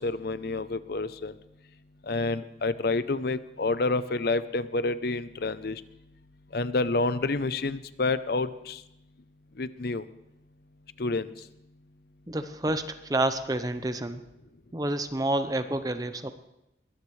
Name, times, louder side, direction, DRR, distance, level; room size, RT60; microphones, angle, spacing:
voice 1, 0.0-1.3 2.1-5.8 6.5-8.8 9.6-10.0 11.0-11.3, left 3 dB, 55° left, 14 dB, 0.6 m, -28 dB
voice 2, 12.3-14.2 14.7-16.3, right 1 dB, 20° right, 9 dB, 0.8 m, -29 dB
22.5 x 19.0 x 3.3 m, 0.85 s
head